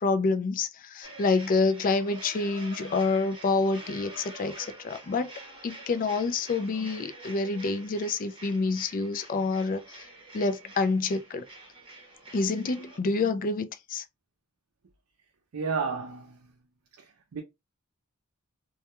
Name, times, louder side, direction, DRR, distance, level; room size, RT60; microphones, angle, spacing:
voice 1, 0.0-5.3 5.6-10.1 10.3-11.4 12.3-14.0, left 3 dB, 40° left, 0.3 m, -27 dB
sound 1, 1.0-13.0, right 2 dB, 25° right, 0.9 m, -47 dB
voice 2, 15.5-16.4 17.3-17.4, right 5 dB, 65° right, 0.4 m, -31 dB
2.2 x 2.1 x 2.9 m
head